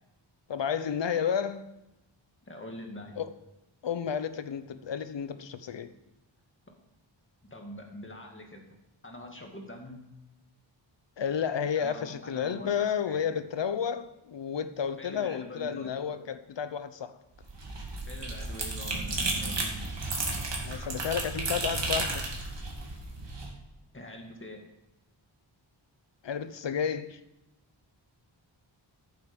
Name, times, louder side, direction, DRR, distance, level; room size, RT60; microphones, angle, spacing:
voice 1, 0.5-1.6 3.2-3.3 3.8-5.9 11.2-17.2 20.6-22.2 26.2-27.2, left 7 dB, 65° left, 0.9 m, -31 dB
voice 2, 2.4-3.2 7.5-8.6 9.0-10.0 11.8-13.2 15.0-15.9 18.1-19.5 23.9-24.7, left 1 dB, 25° left, 2.2 m, -44 dB
sound 1, 17.4-23.5, right 2 dB, 60° right, 2.7 m, -33 dB
13.5 x 7.9 x 5.3 m
wide cardioid pair, 115°, 47 cm